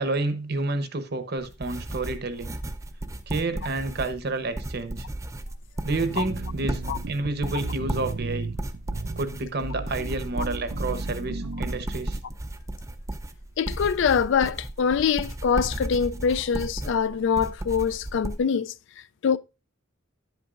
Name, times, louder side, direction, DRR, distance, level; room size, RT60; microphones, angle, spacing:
voice 1, 0.0-2.6 3.3-5.1 5.8-6.8 7.1-8.5 9.2-12.2, right 2 dB, 50° right, 0.9 m, -29 dB
sound 1, 1.4-18.4, right 1 dB, 15° right, 0.5 m, -34 dB
sound 2, 5.9-11.9, right 3 dB, 90° right, 0.6 m, -35 dB
voice 2, 13.6-18.7 19.2-19.4, left 6 dB, 60° left, 0.3 m, -24 dB
10.5 x 8.0 x 2.5 m
head